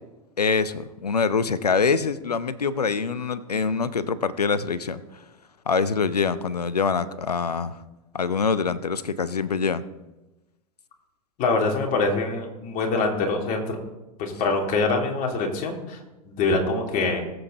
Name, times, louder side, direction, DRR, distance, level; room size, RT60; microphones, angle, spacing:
voice 1, 0.4-5.2 5.7-7.8 8.1-9.8, left 5 dB, 90° left, 15 dB, 0.7 m, -24 dB
voice 2, 11.4-13.8 14.2-16.0 16.2-17.2, left 3 dB, 45° left, 1 dB, 3.1 m, -24 dB
20.5 x 8.0 x 4.0 m, 1.0 s
figure-of-eight pair, 95°, 20 cm